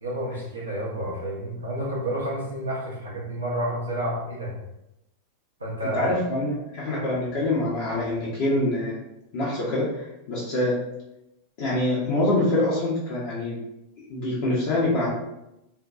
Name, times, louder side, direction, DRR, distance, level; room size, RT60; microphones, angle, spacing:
voice 1, 0.0-4.5 5.6-6.1, right 1 dB, 75° right, -5 dB, 0.7 m, -30 dB
voice 2, 5.9-9.0 9.3-10.7 11.6-13.5 14.1-15.1, left 1 dB, 50° left, -8 dB, 0.6 m, -25 dB
2.5 x 2.2 x 2.2 m, 0.89 s
figure-of-eight pair, 90°, 0 cm